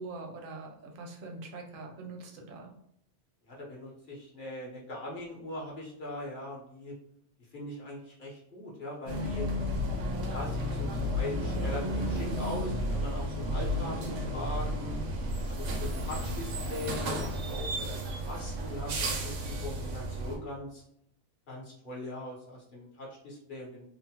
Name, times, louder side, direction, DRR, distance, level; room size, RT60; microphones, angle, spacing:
voice 1, 0.0-2.7, right 3 dB, 60° right, 2 dB, 0.6 m, -43 dB
voice 2, 3.5-6.9 7.4-9.5 10.2-15.1 15.6-20.8 21.5-23.8, left 1 dB, 50° left, -5 dB, 0.9 m, -41 dB
sound 1, 9.1-20.4, equal, 90° right, 1.0 m, -32 dB
3.0 x 2.0 x 2.8 m, 0.73 s
omnidirectional pair, 1.2 m